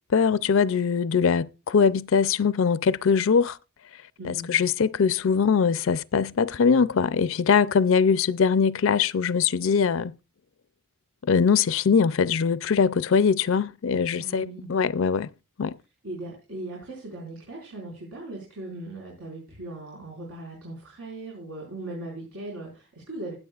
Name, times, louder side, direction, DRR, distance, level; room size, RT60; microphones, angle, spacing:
voice 1, 0.1-3.6 4.2-10.1 11.2-15.3 15.6-15.8, left 6 dB, 65° left, 0.4 m, -22 dB
voice 2, 14.2-14.7 16.0-23.3, right 2 dB, 90° right, 5.3 m, -39 dB
20.0 x 8.2 x 2.4 m
head